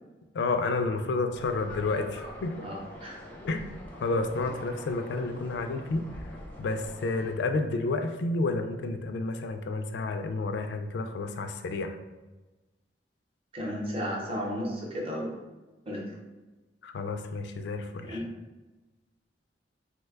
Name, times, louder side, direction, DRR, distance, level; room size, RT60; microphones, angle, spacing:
voice 1, 0.3-2.7 3.4-3.7 4.0-6.1 6.6-12.0 16.8-18.2, left 3 dB, 70° left, 7 dB, 0.3 m, -30 dB
sound 1, 1.3-7.3, left 1 dB, 10° left, 0.5 m, -45 dB
voice 2, 2.6-3.3 13.5-15.3 15.9-16.1 18.0-18.2, equal, 35° right, -2 dB, 0.7 m, -34 dB
3.1 x 2.1 x 3.3 m, 1.2 s
head